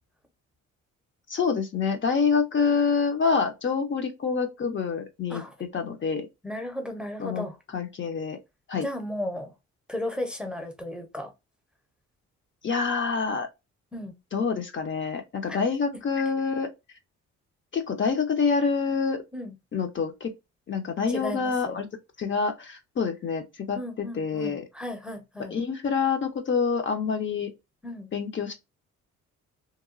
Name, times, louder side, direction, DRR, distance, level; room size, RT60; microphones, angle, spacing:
voice 1, 1.3-5.4 5.7-6.3 7.2-7.4 7.7-8.4 8.7-8.9 12.6-13.5 14.3-16.7 17.7-19.2 19.7-20.3 20.7-21.9 22.2-24.6 25.5-27.5 28.1-28.5, left 5 dB, 40° left, 0.6 m, -26 dB
voice 2, 6.4-7.6 8.8-9.5 9.9-11.3 13.9-14.1 15.5-15.6 19.3-19.5 21.1-21.8 23.7-25.5 27.8-28.1, left 1 dB, 5° right, 0.6 m, -35 dB
2.9 x 2.2 x 2.4 m
cardioid pair, 90°, 30 cm